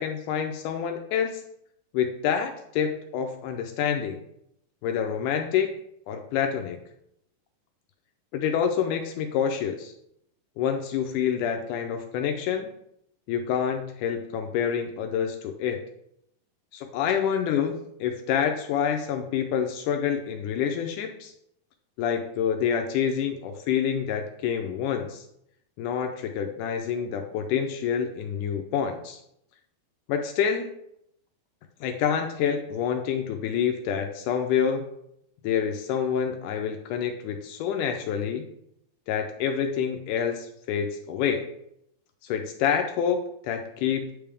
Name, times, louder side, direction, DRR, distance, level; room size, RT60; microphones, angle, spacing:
voice 1, 0.0-1.4 1.9-4.2 4.8-5.7 6.1-6.8 8.3-9.9 10.6-12.7 13.3-15.8 16.7-21.3 22.0-25.3 25.8-29.2 30.1-30.7 31.8-34.8 35.4-38.5 39.1-41.5 42.2-44.1, left 8 dB, 80° left, 4 dB, 1.9 m, -27 dB
9.2 x 3.4 x 3.4 m, 0.76 s
omnidirectional pair, 3.9 m